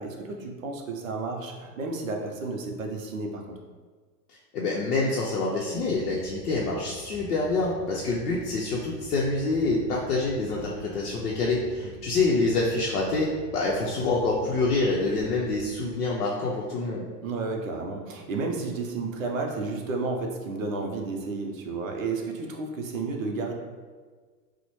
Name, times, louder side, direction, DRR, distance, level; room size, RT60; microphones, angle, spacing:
voice 1, 0.0-3.6 11.8-11.9 17.2-23.5, right 3 dB, 55° right, 2 dB, 0.6 m, -32 dB
voice 2, 4.3-17.1, left 3 dB, 70° left, -4 dB, 0.7 m, -26 dB
sound 1, 5.9-15.8, left 2 dB, 5° left, 1.0 m, -46 dB
4.2 x 2.1 x 3.0 m, 1.5 s
hypercardioid pair, 170°, 49 cm